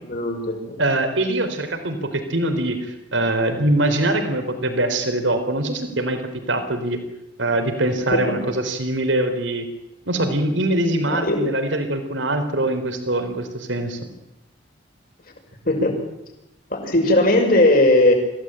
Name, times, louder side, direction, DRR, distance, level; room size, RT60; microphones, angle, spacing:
voice 1, 0.0-0.8 8.1-8.4 11.1-11.4 15.6-16.0 16.7-18.1, left 1 dB, 50° left, 2 dB, 6.2 m, -18 dB
voice 2, 0.8-7.0 7.4-9.7 10.1-14.0, right 1 dB, 80° right, 7 dB, 4.0 m, -23 dB
26.0 x 16.5 x 9.0 m, 0.91 s
head